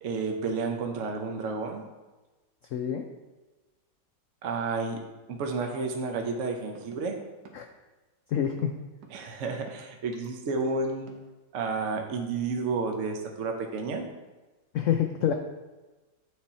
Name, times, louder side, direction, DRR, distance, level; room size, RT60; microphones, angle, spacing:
voice 1, 0.0-1.8 4.4-5.0 5.3-7.2 9.1-11.1 11.5-14.1, right 4 dB, 55° right, 3 dB, 1.0 m, -31 dB
voice 2, 2.7-3.0 7.5-7.7 8.3-8.8 14.7-15.3, left 9 dB, 75° left, 5 dB, 0.7 m, -27 dB
sound 1, 6.2-6.3 6.8-7.0 7.5-7.6 8.4-8.7 9.0-9.7 10.1-11.3, right 7 dB, 85° right, 1.5 m, -50 dB
8.8 x 4.3 x 4.2 m, 1.2 s
omnidirectional pair, 1.9 m